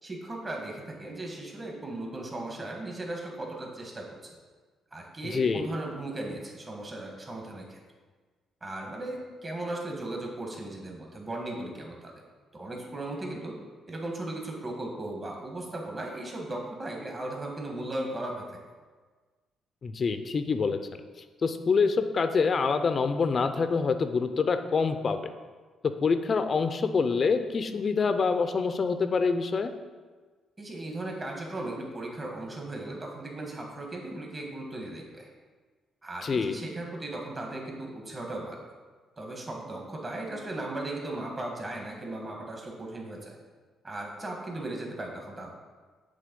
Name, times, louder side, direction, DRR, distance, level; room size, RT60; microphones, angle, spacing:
voice 1, 0.0-4.4 4.9-7.8 8.6-12.1 12.5-13.5 13.9-18.6 30.6-35.3 36.0-38.6 39.2-43.4 43.8-45.5, right 2 dB, 30° right, 0 dB, 1.5 m, -37 dB
voice 2, 5.2-5.7 19.8-20.8 21.4-25.2 25.8-29.7 36.2-36.6, left 5 dB, 45° left, 9 dB, 0.5 m, -26 dB
7.6 x 3.4 x 5.3 m, 1.4 s
cardioid pair, 90°, 0 cm